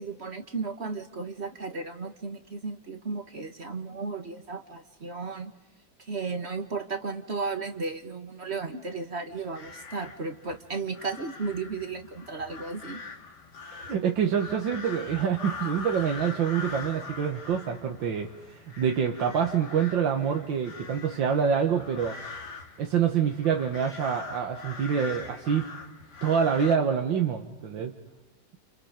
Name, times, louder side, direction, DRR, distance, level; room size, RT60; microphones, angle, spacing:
voice 1, 0.0-5.5 6.0-13.0, right 4 dB, 35° right, 7 dB, 1.7 m, -34 dB
sound 1, 9.3-26.8, left 4 dB, 60° left, 2.4 m, -43 dB
voice 2, 13.7-22.2 22.8-25.7 26.2-27.9, right 7 dB, 80° right, 3 dB, 2.1 m, -26 dB
29.5 x 29.5 x 5.1 m, 1.0 s
omnidirectional pair, 2.1 m